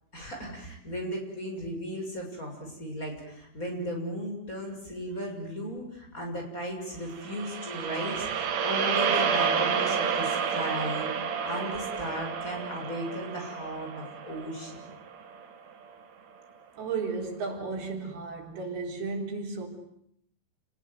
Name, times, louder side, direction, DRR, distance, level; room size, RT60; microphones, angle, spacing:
voice 1, 0.1-11.1 11.4-14.8, equal, 20° left, 7.2 m, -36 dB
sound 1, 7.1-15.4, right 6 dB, 55° right, 2.9 m, -30 dB
voice 2, 16.8-19.7, right 4 dB, 85° right, 6.1 m, -34 dB
29.0 x 20.0 x 9.5 m
omnidirectional pair, 4.3 m